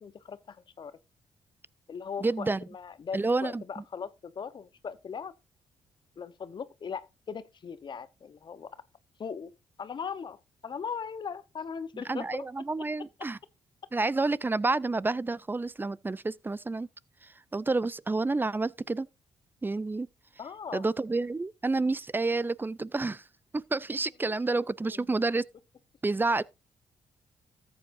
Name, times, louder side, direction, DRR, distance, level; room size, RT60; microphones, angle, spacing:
voice 1, 0.0-1.0 1.9-5.3 6.2-8.7 9.2-9.5 9.8-12.5 20.4-20.9 24.3-25.1, left 6 dB, 50° left, 0.9 m, -39 dB
voice 2, 2.2-2.6 3.1-3.6 11.9-13.4 13.9-16.9 17.2-19.1 19.6-20.1 20.7-23.2 23.5-25.4 26.0-26.4, right 3 dB, 20° right, 0.5 m, -29 dB
14.0 x 8.5 x 2.6 m
cardioid pair, 70°, 10 cm